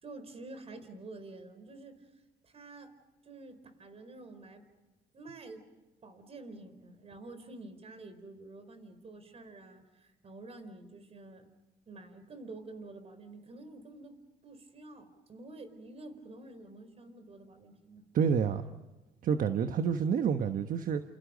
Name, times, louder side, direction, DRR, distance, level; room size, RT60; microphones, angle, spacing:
voice 1, 0.0-2.1 2.4-3.0 3.2-4.7 5.1-5.7 6.0-11.5 11.9-18.0 19.6-19.8, right 2 dB, 35° right, 4.5 m, -49 dB
voice 2, 18.1-18.6 19.2-21.0, right 7 dB, 55° right, 1.3 m, -28 dB
30.0 x 28.5 x 5.2 m
cardioid pair, 110°, 17 cm